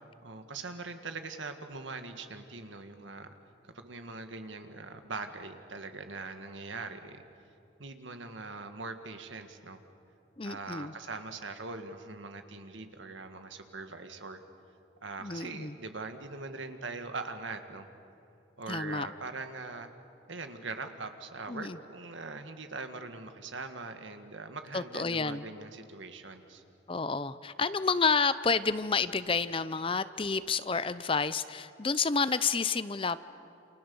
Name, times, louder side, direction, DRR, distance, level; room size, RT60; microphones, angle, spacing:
voice 1, 0.2-3.3 3.7-7.2 7.8-9.8 10.4-14.4 15.0-17.9 18.6-19.9 20.3-26.6, right 3 dB, 75° right, 7 dB, 1.9 m, -42 dB
voice 2, 10.4-10.9 15.2-15.8 18.7-19.1 21.5-21.8 24.7-25.4 26.9-33.2, left 5 dB, 25° left, 14 dB, 0.6 m, -30 dB
29.0 x 27.5 x 7.1 m, 2.6 s
head